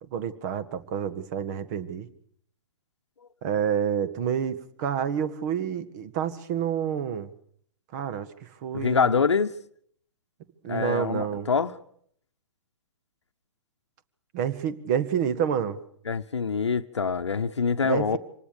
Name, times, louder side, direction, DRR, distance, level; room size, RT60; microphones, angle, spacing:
voice 1, 0.0-2.1 3.4-7.3 7.9-9.2 10.6-11.5 14.3-15.8 17.8-18.2, right 8 dB, 35° right, 1.8 m, -28 dB
voice 2, 8.7-9.5 10.7-11.7 16.1-18.2, left 5 dB, 70° left, 1.0 m, -25 dB
26.0 x 19.5 x 6.8 m
figure-of-eight pair, 120°, 15 cm